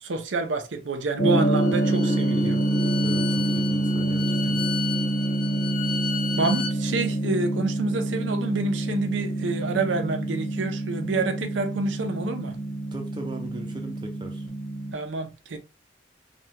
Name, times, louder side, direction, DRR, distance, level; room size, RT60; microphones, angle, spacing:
voice 1, 0.0-2.6 4.4-4.6 6.3-12.5 14.9-15.6, right 3 dB, 90° right, 0.6 m, -28 dB
Gong, 1.2-14.9, right 1 dB, 85° left, 1.3 m, -26 dB
Bowed string instrument, 1.4-6.7, left 6 dB, 45° left, 0.6 m, -34 dB
voice 2, 3.0-4.6 12.9-14.5, right 2 dB, 25° right, 0.5 m, -39 dB
3.3 x 2.3 x 2.8 m
head